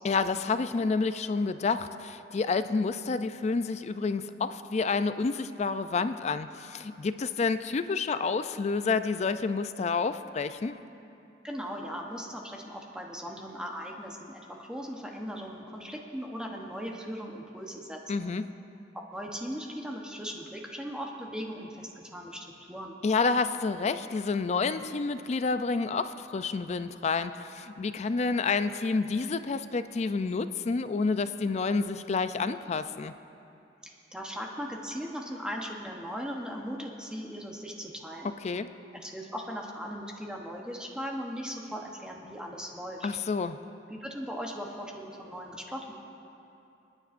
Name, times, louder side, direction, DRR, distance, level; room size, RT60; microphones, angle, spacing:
voice 1, 0.0-10.8 18.1-18.4 23.0-33.1 38.4-38.7 43.0-43.6, left 4 dB, 40° left, 12 dB, 0.4 m, -29 dB
voice 2, 11.4-18.0 18.9-23.0 33.8-38.3 38.9-43.1 43.9-45.9, equal, 5° right, -1 dB, 0.9 m, -38 dB
27.5 x 9.8 x 2.5 m, 2.7 s
head